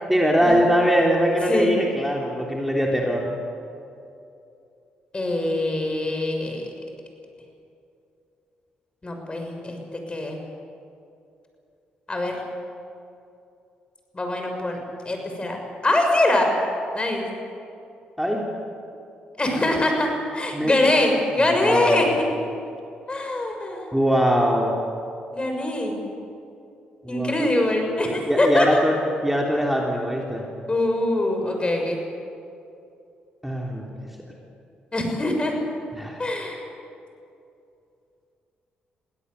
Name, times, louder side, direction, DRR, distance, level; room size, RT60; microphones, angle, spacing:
voice 1, 0.1-3.3 18.2-18.5 20.5-20.7 21.6-22.0 23.9-24.8 27.0-27.5 28.3-29.0 29.2-30.5 33.4-33.9 36.0-36.2, equal, 5° right, -1 dB, 3.4 m, -22 dB
voice 2, 5.1-6.7 9.0-10.4 12.1-12.4 14.1-14.8 15.0-16.5 16.9-17.3 19.4-22.2 23.1-23.8 25.3-26.0 27.1-28.8 30.7-32.0 34.9-35.5 36.2-36.6, left 1 dB, 30° left, 3 dB, 6.3 m, -23 dB
23.0 x 17.0 x 8.3 m, 2.6 s
supercardioid pair, 55°, 4 cm